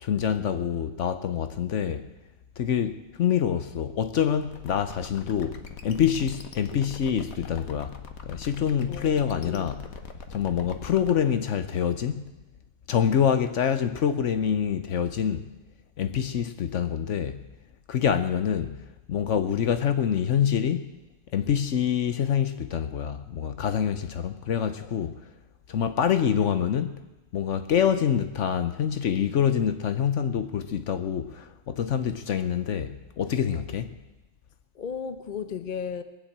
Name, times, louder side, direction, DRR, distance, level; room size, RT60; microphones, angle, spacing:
voice 1, 0.0-2.1 2.6-8.0 8.2-9.8 10.3-12.2 12.9-15.5 16.0-17.4 17.9-18.8 19.1-20.9 21.3-25.1 25.7-27.0 27.3-33.9, left 8 dB, 65° left, 1.0 m, -26 dB
sound 1, 4.4-11.1, left 5 dB, 80° left, 1.6 m, -42 dB
voice 2, 8.9-9.7 24.8-25.1 34.7-36.0, left 7 dB, 40° left, 0.8 m, -36 dB
21.0 x 7.4 x 8.7 m
omnidirectional pair, 1.4 m